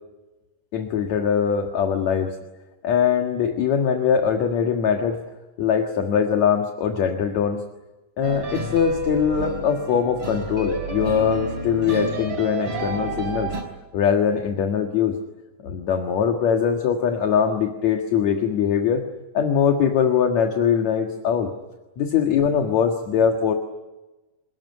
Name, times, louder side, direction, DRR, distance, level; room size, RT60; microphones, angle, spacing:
voice 1, 0.7-2.3 2.8-5.2 5.6-7.6 8.2-13.5 13.9-15.2 15.6-19.0 19.3-21.5 22.0-23.5, left 7 dB, 60° left, 4 dB, 2.9 m, -22 dB
sound 1, 8.2-13.6, right 2 dB, 40° right, 5.3 m, -30 dB
28.0 x 20.0 x 9.6 m, 1.1 s
omnidirectional pair, 3.9 m